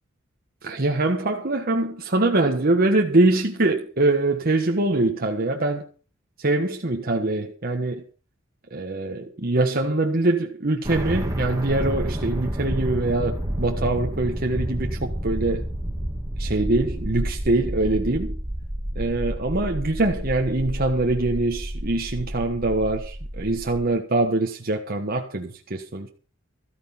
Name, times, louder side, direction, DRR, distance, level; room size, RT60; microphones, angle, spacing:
voice 1, 0.6-5.8 6.4-8.0 8.7-15.6 16.4-18.4 18.9-26.1, right 2 dB, 45° right, 1.4 m, -23 dB
sound 1, 10.8-23.9, equal, 15° right, 2.4 m, -30 dB
14.0 x 9.3 x 5.7 m
head